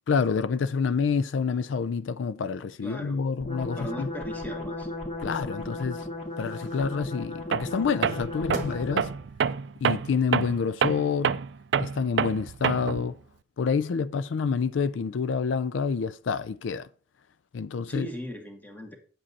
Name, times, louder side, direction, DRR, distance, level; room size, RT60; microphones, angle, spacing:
voice 1, 0.1-4.1 5.2-6.1 6.4-9.1 9.8-11.4 11.8-13.2 13.6-16.9 17.5-18.1, left 5 dB, 90° left, 0.4 m, -28 dB
sound 1, 1.5-3.7 4.1-4.4 4.8-13.5 13.8-16.5, right 2 dB, 40° right, 1.1 m, -48 dB
voice 2, 2.8-3.3 3.7-4.9 17.9-19.0, equal, 10° left, 1.5 m, -38 dB
sound 2, 3.4-9.2, left 2 dB, 40° left, 2.1 m, -36 dB
Tools, 7.5-7.8 8.0-13.1, right 6 dB, 65° right, 0.4 m, -27 dB
8.7 x 7.6 x 4.1 m
head